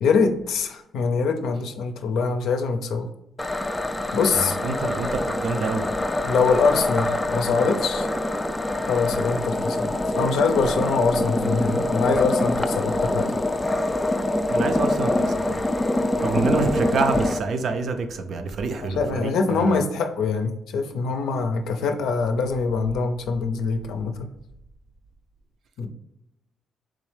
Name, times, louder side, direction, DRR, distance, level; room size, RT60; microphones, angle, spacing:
voice 1, 0.0-3.1 4.1-4.6 6.2-8.1 8.9-13.3 18.8-24.3 25.8-25.9, left 4 dB, 80° left, 5 dB, 0.5 m, -24 dB
sound 1, 3.4-17.4, left 1 dB, 15° left, 0.3 m, -25 dB
voice 2, 4.3-5.9 14.5-15.6 16.2-19.8, right 4 dB, 60° right, 7 dB, 0.5 m, -27 dB
3.7 x 3.0 x 3.2 m, 0.85 s
cardioid pair, 90°, 0 cm